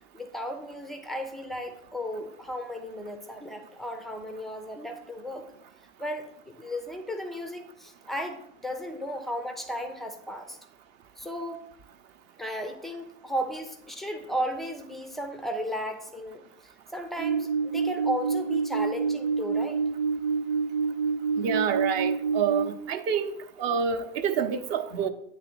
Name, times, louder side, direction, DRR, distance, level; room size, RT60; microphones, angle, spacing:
voice 1, 0.1-5.5 6.0-10.6 11.2-11.6 12.4-16.4 16.9-19.8, equal, ahead, 6 dB, 0.3 m, -35 dB
sound 1, 17.2-22.7, right 5 dB, 65° right, 1.0 m, -27 dB
voice 2, 21.4-23.3 23.6-25.1, right 7 dB, 45° right, 8 dB, 0.7 m, -27 dB
8.8 x 3.1 x 4.3 m, 0.75 s
hypercardioid pair, 100°, 38 cm